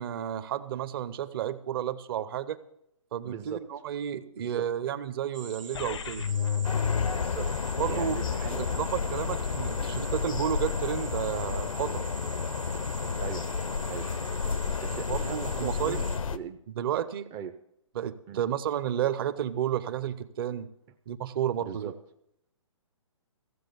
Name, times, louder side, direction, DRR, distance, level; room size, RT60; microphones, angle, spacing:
voice 1, 0.0-2.6 3.1-6.2 7.8-8.2 8.6-12.1 15.1-16.0 16.7-17.3 17.9-20.7 21.1-21.9, right 10 dB, 45° right, 14 dB, 0.8 m, -31 dB
voice 2, 3.2-3.6 4.4-4.6 6.1-6.2 7.1-7.5 7.9-8.9 13.2-13.5 13.9-14.1 14.8-16.6 17.3-17.5 18.3-18.4 21.7-21.9, right 9 dB, 20° right, 6 dB, 0.5 m, -39 dB
sound 1, 5.3-16.2, right 6 dB, 80° right, 1.1 m, -45 dB
sound 2, 5.7-11.8, left 7 dB, 60° left, 0.5 m, -34 dB
sound 3, 6.6-16.4, left 5 dB, 90° left, 0.7 m, -31 dB
15.5 x 7.4 x 6.8 m, 0.79 s
hypercardioid pair, 140°, 17 cm